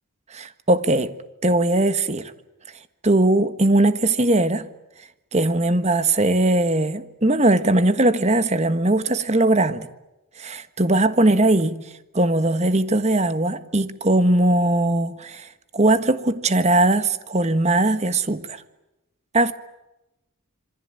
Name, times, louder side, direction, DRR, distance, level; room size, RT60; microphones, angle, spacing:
voice 1, 0.3-1.1 1.4-2.3 3.0-4.7 5.3-9.9 10.4-11.8 12.1-18.6 19.3-19.5, right 2 dB, 30° right, 1.5 m, -20 dB
27.0 x 24.5 x 9.0 m
head